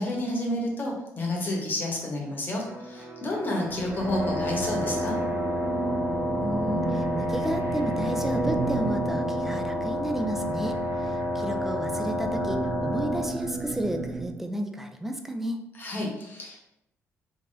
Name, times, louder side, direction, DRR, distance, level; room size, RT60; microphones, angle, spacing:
voice 1, 0.0-5.2 15.8-16.6, left 1 dB, 35° left, -1 dB, 1.0 m, -30 dB
Electric guitar, 2.6-10.3, right 1 dB, 40° right, 1.1 m, -46 dB
sound 1, 3.6-14.4, right 3 dB, 60° right, 0.8 m, -33 dB
Wind instrument woodwind instrument, 4.0-13.4, left 1 dB, 55° left, 0.6 m, -30 dB
voice 2, 6.4-15.6, right 1 dB, 5° right, 5 dB, 0.4 m, -32 dB
3.7 x 2.9 x 2.6 m, 0.86 s
cardioid pair, 110°, 5 cm